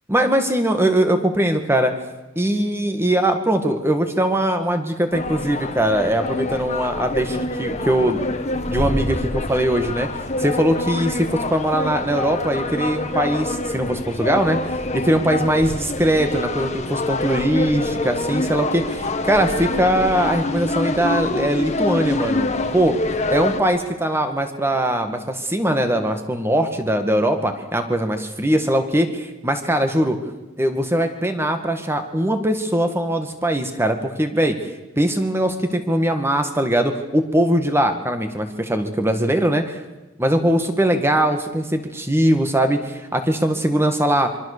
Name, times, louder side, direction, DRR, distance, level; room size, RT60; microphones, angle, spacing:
voice 1, 0.1-1.9 2.4-8.2 8.7-10.1 10.4-14.6 14.9-23.0 23.3-30.2 30.6-34.6 35.0-39.8 40.2-44.3, right 1 dB, 10° right, 7 dB, 1.9 m, -21 dB
sound 1, 5.1-23.6, left 2 dB, 35° left, 1.6 m, -26 dB
26.0 x 24.0 x 6.8 m, 1.1 s
head